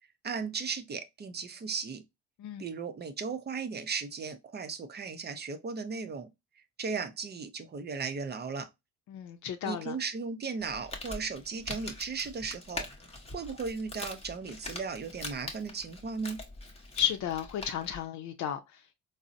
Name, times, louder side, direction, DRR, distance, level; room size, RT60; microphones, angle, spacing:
voice 1, 0.2-2.0 2.6-6.3 6.8-8.7 9.6-12.9 13.3-16.4, right 5 dB, 35° right, 0.5 m, -36 dB
voice 2, 9.1-10.0 17.0-18.9, left 10 dB, 70° left, 0.5 m, -33 dB
Crumpling crinkling, 10.6-18.0, left 2 dB, 20° left, 0.9 m, -43 dB
3.7 x 2.0 x 2.5 m
cardioid pair, 90°, 30 cm